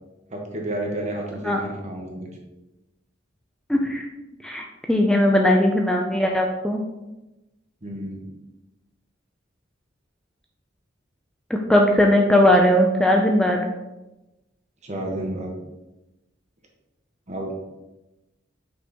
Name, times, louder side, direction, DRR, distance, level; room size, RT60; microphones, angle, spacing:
voice 1, 0.3-2.3 7.8-8.3 14.8-15.5 17.3-17.5, right 1 dB, 40° right, 0 dB, 1.3 m, -31 dB
voice 2, 3.7-4.1 4.4-6.8 11.5-13.6, left 1 dB, 5° left, 1 dB, 0.4 m, -19 dB
6.0 x 5.4 x 2.9 m, 1.0 s
head